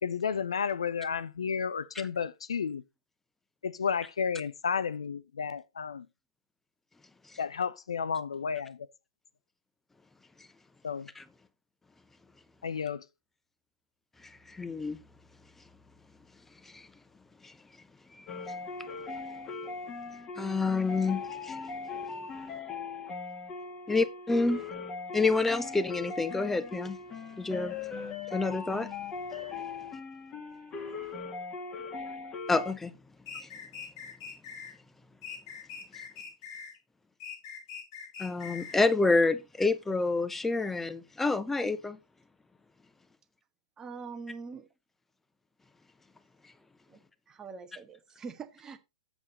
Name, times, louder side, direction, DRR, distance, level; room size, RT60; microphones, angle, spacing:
voice 1, 0.0-2.8 3.6-6.1 7.4-8.8 10.8-11.1 12.6-13.0, left 6 dB, 70° left, 0.6 m, -32 dB
voice 2, 14.2-15.0 16.6-16.9 17.4-17.5 18.1-18.4 20.4-21.6 23.9-24.6 25.1-27.0 27.4-27.8 28.3-28.9 32.5-32.9 38.2-42.0, left 3 dB, 10° left, 0.8 m, -28 dB
sound 1, 18.3-32.7, left 4 dB, 25° left, 1.7 m, -39 dB
sound 2, 33.3-34.7 35.2-36.8 37.2-38.8, left 7 dB, 50° left, 4.1 m, -43 dB
voice 3, 43.8-44.7 46.9-47.0 47.3-48.8, right 5 dB, 20° right, 1.2 m, -43 dB
7.7 x 7.0 x 4.0 m
figure-of-eight pair, 110°, 3 cm